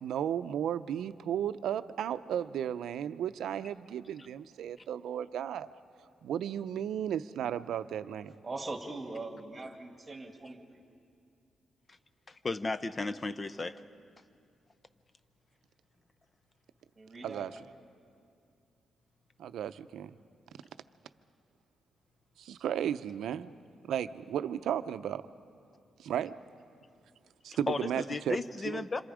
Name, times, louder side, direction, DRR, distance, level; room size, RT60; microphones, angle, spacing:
voice 1, 0.0-5.7 6.2-8.3 17.2-17.6 19.4-20.2 22.4-23.5 23.9-25.2 26.0-26.3 27.4-28.4 28.6-28.8, right 9 dB, 85° right, 12 dB, 0.6 m, -34 dB
voice 2, 8.4-10.8 17.0-17.5, right 2 dB, 20° right, 3 dB, 2.2 m, -41 dB
voice 3, 12.3-13.8 27.5-29.0, left 3 dB, 25° left, 12 dB, 0.7 m, -34 dB
27.0 x 26.5 x 5.0 m, 2.4 s
cardioid pair, 145°, 0 cm